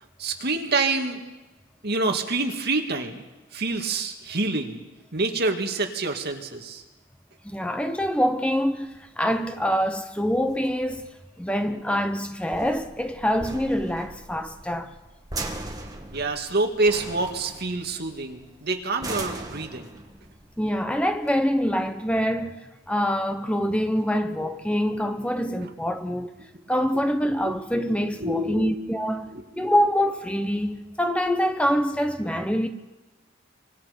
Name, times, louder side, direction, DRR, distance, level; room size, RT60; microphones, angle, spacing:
voice 1, 0.2-1.2 1.8-3.2 3.5-4.8 5.1-6.8 16.1-19.9 27.5-27.6 28.2-28.7 29.6-29.7, right 3 dB, 55° right, 2.2 m, -27 dB
voice 2, 7.4-11.1 11.4-14.9 20.6-26.3 26.7-29.3 29.6-32.7, equal, 5° left, 0.9 m, -25 dB
sound 1, 8.9-21.9, right 2 dB, 20° right, 2.2 m, -40 dB
25.0 x 24.5 x 5.3 m
head